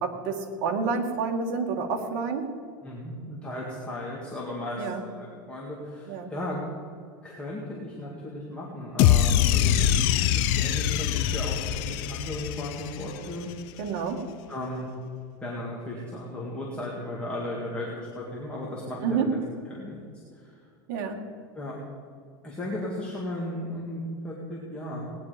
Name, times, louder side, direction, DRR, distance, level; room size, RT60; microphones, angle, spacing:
voice 1, 0.0-2.5 4.8-5.0 6.1-6.3 13.8-14.2 19.0-19.3 20.9-21.2, right 5 dB, 55° right, 2 dB, 2.0 m, -29 dB
voice 2, 2.8-6.6 7.2-13.9 14.5-14.9 15.4-19.0 19.3-19.4 19.7-20.0 20.3-20.6 21.5-21.8 22.4-25.1, left 1 dB, 10° left, -5 dB, 2.1 m, -36 dB
sound 1, 9.0-13.3, left 10 dB, 50° left, 0.6 m, -23 dB
18.5 x 10.0 x 5.1 m, 2.2 s
supercardioid pair, 155°, 11 cm